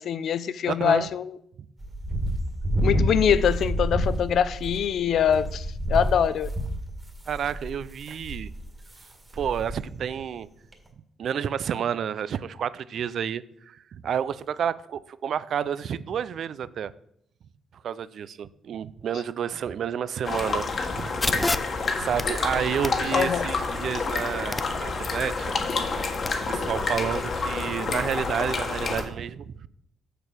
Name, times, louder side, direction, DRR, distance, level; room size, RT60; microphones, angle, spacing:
voice 1, 0.0-1.4 2.8-6.5 23.1-23.5, left 8 dB, 65° left, 0.5 m, -24 dB
voice 2, 0.7-1.1 7.3-8.5 9.3-10.5 11.2-16.9 17.8-21.5 22.0-25.5 26.5-29.7, right 8 dB, 60° right, 0.4 m, -30 dB
sound 1, 1.8-9.0 9.3-9.8 10.1-10.2 10.7-10.8, right 1 dB, 15° right, 1.8 m, -29 dB
sound 2, 20.2-29.0, left 4 dB, 45° left, 1.5 m, -28 dB
sound 3, 21.2-26.3, left 2 dB, 20° left, 0.6 m, -34 dB
6.7 x 6.7 x 6.0 m
cardioid pair, 90°, 0 cm